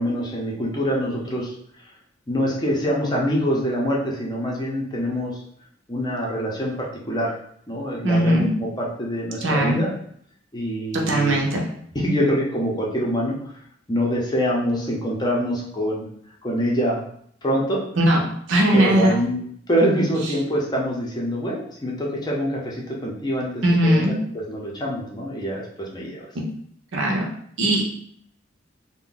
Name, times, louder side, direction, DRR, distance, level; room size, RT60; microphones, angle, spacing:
voice 1, 0.0-1.5 2.3-5.4 5.9-7.3 7.7-9.9 10.5-11.4 11.9-13.4 13.9-16.1 16.4-17.0 17.4-17.8 18.7-19.4 19.7-26.3, equal, 20° left, -3 dB, 0.6 m, -25 dB
voice 2, 8.0-8.5 9.4-9.8 10.9-11.7 18.0-18.2 18.5-19.2 23.6-24.1 26.9-27.2 27.6-27.8, right 1 dB, 70° right, -1 dB, 0.7 m, -19 dB
2.5 x 2.2 x 3.7 m, 0.66 s
head